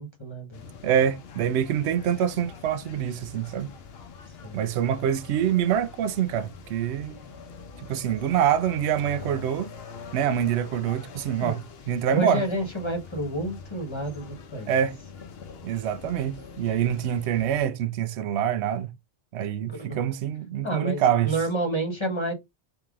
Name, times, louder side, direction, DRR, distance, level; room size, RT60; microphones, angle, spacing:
voice 1, 0.0-0.8 4.4-4.6 11.4-11.6 12.1-14.7 19.7-20.0 20.6-22.3, right 1 dB, 25° left, 1.2 m, -30 dB
sound 1, 0.5-17.6, left 5 dB, 65° left, 0.9 m, -44 dB
voice 2, 0.8-3.7 4.5-7.2 7.8-9.7 10.1-11.6 11.9-12.4 14.7-15.0 15.6-18.9 19.3-21.3, right 9 dB, 75° right, 0.8 m, -25 dB
3.6 x 2.9 x 3.5 m
omnidirectional pair, 1.2 m